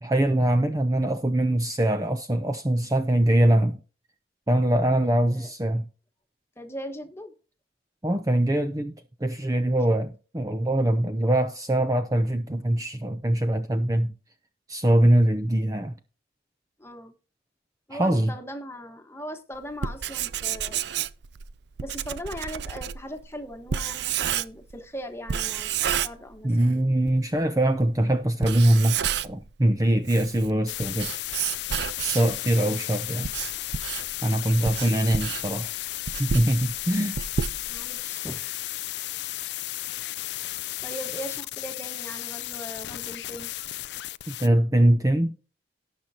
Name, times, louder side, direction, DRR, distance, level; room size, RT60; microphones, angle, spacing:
voice 1, 0.0-3.8 4.5-5.9 8.0-8.9 9.2-14.1 14.7-15.9 17.9-18.3 26.4-31.1 32.0-33.3 34.2-35.7 36.2-37.2 44.3-45.4, right 1 dB, 20° right, 0.5 m, -23 dB
voice 2, 5.0-5.5 6.6-7.3 9.7-10.0 16.8-17.1 17.9-20.8 21.8-26.8 37.7-38.6 40.8-43.5, equal, 15° left, 1.3 m, -39 dB
Writing, 19.7-24.8 25.3-26.7 27.1-27.2 27.8-27.9 28.3-29.5 29.9-32.4 33.0-38.0, right 8 dB, 65° right, 0.5 m, -30 dB
sound 1, 30.7-44.5, left 16 dB, 65° left, 0.4 m, -34 dB
18.0 x 6.0 x 2.8 m
head